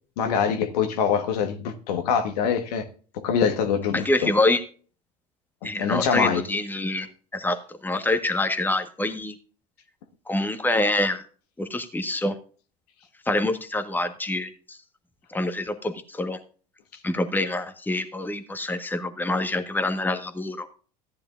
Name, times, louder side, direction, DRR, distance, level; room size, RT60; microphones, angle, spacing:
voice 1, 0.2-2.9 3.1-4.3 5.8-6.4, left 7 dB, 70° left, 1.5 m, -24 dB
voice 2, 3.9-4.6 5.6-7.1 7.3-7.6 7.8-9.3 10.3-11.2 11.6-12.3 13.3-14.8 15.3-16.4 17.0-20.7, left 2 dB, 10° left, 1.4 m, -26 dB
14.5 x 10.5 x 2.5 m
hypercardioid pair, 75°, 21 cm